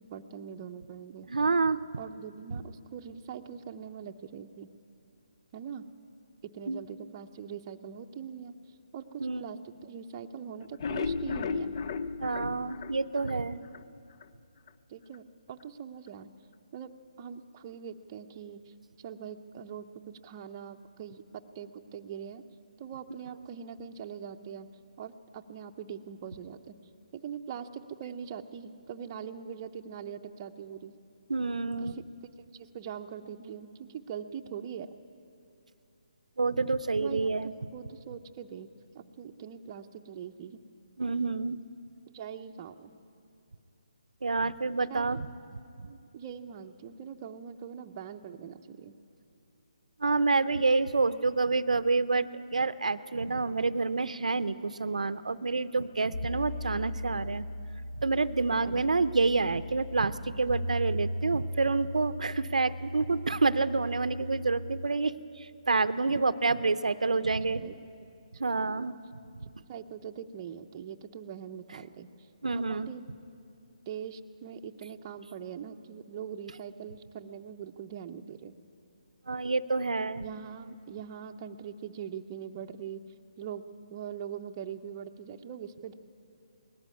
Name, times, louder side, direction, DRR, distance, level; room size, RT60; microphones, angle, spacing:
voice 1, 0.0-1.3 2.0-4.7 5.5-5.9 6.5-8.5 8.9-11.7 14.9-16.3 16.7-16.9 17.2-22.4 22.8-24.7 25.0-26.7 27.1-31.0 31.8-32.0 32.5-34.9 37.0-37.3 37.7-38.7 38.9-40.6 42.1-43.0 44.9-45.2 45.8-49.0 58.6-58.9 66.1-66.6 67.0-67.3 67.6-67.8 68.6-68.9 69.7-72.3 72.5-73.0 73.9-78.5 80.2-83.0 83.4-83.6 83.9-85.9, right 8 dB, 25° right, 5 dB, 0.7 m, -42 dB
voice 2, 1.3-1.8 2.5-2.6 6.7-6.8 9.2-9.5 12.2-13.6 31.3-32.0 36.4-37.5 41.0-41.6 44.2-45.3 45.8-45.9 50.0-57.5 58.0-67.6 68.4-69.0 72.4-72.9 79.3-80.2, right 3 dB, 85° right, 14 dB, 0.6 m, -28 dB
sound 1, 10.6-13.8 14.2-14.3 14.7-14.8 15.1-15.2, left 5 dB, 40° left, 0.5 m, -34 dB
sound 2, 56.1-64.9, equal, 65° left, 1.3 m, -38 dB
19.0 x 14.0 x 9.7 m, 2.6 s
hypercardioid pair, 160°, 4 cm